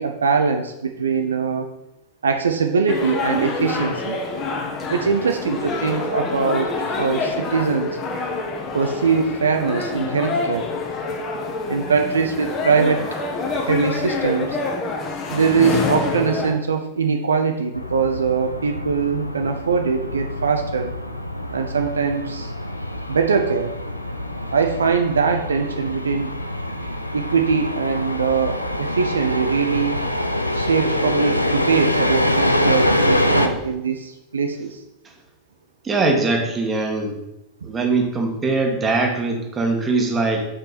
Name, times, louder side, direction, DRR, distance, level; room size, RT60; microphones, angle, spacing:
voice 1, 0.0-1.7 2.2-4.2 4.9-6.7 7.0-7.9 8.7-10.7 11.7-13.0 13.5-14.6 15.3-20.9 21.5-22.5 23.1-23.8 24.5-26.3 27.1-30.0 30.5-34.8, right 5 dB, 70° right, 6 dB, 0.7 m, -22 dB
sound 1, 2.9-16.5, left 3 dB, 30° left, 1.6 m, -26 dB
sound 2, 17.7-33.5, left 1 dB, 85° left, 0.7 m, -25 dB
voice 2, 35.8-37.2 37.6-40.5, right 3 dB, 20° right, 2 dB, 1.8 m, -21 dB
6.9 x 5.4 x 6.8 m, 0.88 s
figure-of-eight pair, 90°, 0 cm